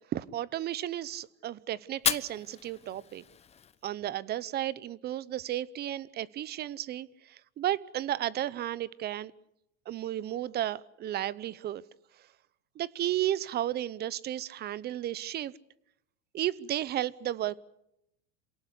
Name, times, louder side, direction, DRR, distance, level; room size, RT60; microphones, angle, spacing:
voice 1, 0.0-3.2 3.8-9.3 9.9-11.8 12.8-15.5 16.3-17.6, right 12 dB, 30° right, 21 dB, 0.8 m, -33 dB
Fire, 1.9-3.9, left 8 dB, 20° left, 0.9 m, -34 dB
27.5 x 18.0 x 8.3 m, 0.83 s
supercardioid pair, 130°, 32 cm